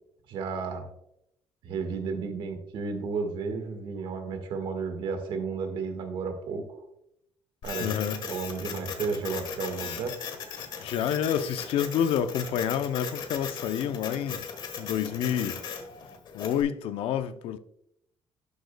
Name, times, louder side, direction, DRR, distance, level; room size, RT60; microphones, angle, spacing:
voice 1, 0.3-0.8 1.6-6.8 7.6-7.9 8.2-10.2, right 5 dB, 65° right, 1.5 m, -33 dB
Printer, 7.6-16.6, left 6 dB, 55° left, 1.3 m, -38 dB
voice 2, 7.8-8.2 10.8-14.5 14.8-15.6 16.3-17.6, left 9 dB, 85° left, 0.6 m, -28 dB
12.0 x 6.5 x 2.2 m
cardioid pair, 175°, 9 cm